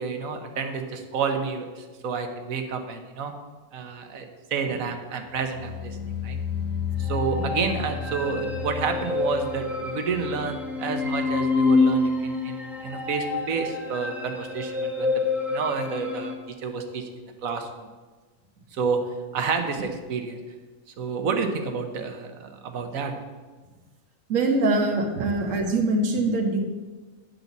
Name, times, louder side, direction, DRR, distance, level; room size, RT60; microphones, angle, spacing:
voice 1, 0.0-3.3 3.7-4.2 4.5-6.0 6.2-6.4 7.0-15.1 15.5-16.3 16.6-17.9 18.7-19.0 19.3-20.4 21.0-23.1 24.6-24.7 25.2-25.3, right 5 dB, 90° right, 5 dB, 1.3 m, -29 dB
sound 1, 5.2-12.4 12.6-13.1 13.4-13.5, left 7 dB, 75° left, 1.4 m, -34 dB
sound 2, 7.0-16.3, left 3 dB, ahead, 1.0 m, -27 dB
voice 2, 24.3-26.6, right 2 dB, 70° right, 2 dB, 1.5 m, -23 dB
10.5 x 4.0 x 7.1 m, 1.3 s
omnidirectional pair, 1.4 m